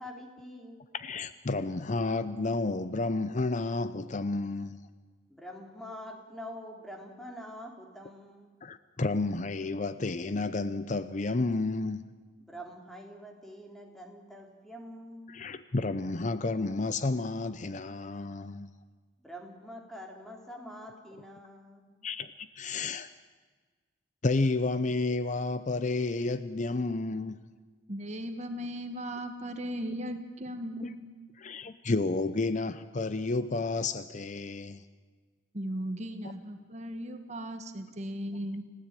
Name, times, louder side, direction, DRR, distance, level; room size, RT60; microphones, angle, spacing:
voice 1, 0.0-0.8 5.3-8.6 12.4-15.5 19.2-22.1, equal, ahead, 1 dB, 3.6 m, -45 dB
voice 2, 0.9-4.9 8.6-12.1 15.3-18.7 22.0-23.1 24.2-27.5 30.8-30.9 31.4-34.8, left 3 dB, 40° left, 13 dB, 0.7 m, -31 dB
voice 3, 27.9-31.1 35.5-38.7, equal, 40° right, 7 dB, 1.7 m, -37 dB
29.5 x 16.0 x 9.0 m, 1.5 s
head